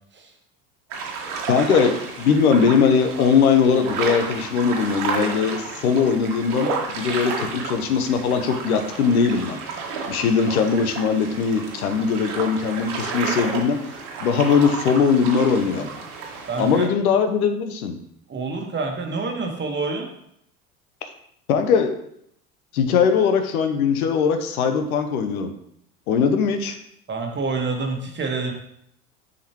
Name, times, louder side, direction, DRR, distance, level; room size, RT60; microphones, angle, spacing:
sound 1, 0.9-16.9, right 4 dB, 60° right, 1.6 m, -31 dB
voice 1, 1.5-9.6 10.1-13.8 14.2-15.9 16.6-18.0 21.5-21.9 22.7-25.5 26.1-26.8, left 6 dB, 80° left, 7 dB, 0.9 m, -20 dB
voice 2, 16.5-16.9 18.3-20.1 27.1-28.5, right 3 dB, 25° right, 2 dB, 1.3 m, -27 dB
6.7 x 5.2 x 2.9 m, 0.72 s
hypercardioid pair, 85°, 43 cm